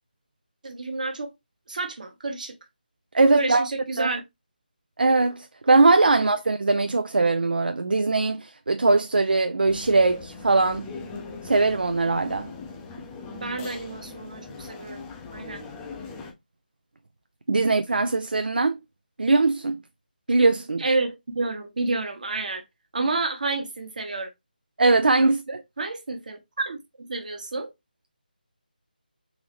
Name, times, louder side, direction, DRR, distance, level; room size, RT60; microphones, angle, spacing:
voice 1, 0.6-1.3 1.7-2.5 3.3-4.2 13.3-15.6 20.8-22.6 22.9-24.3 25.2-25.3 25.8-27.7, right 3 dB, 55° right, 1.1 m, -30 dB
voice 2, 3.1-3.7 4.0-4.1 5.0-10.9 11.4-12.5 17.5-18.8 19.2-19.8 20.3-20.8 24.8-25.6, right 3 dB, 70° right, 0.4 m, -21 dB
sound 1, 9.7-16.3, left 4 dB, 10° left, 0.5 m, -40 dB
3.9 x 2.8 x 3.0 m
figure-of-eight pair, 160°, 5 cm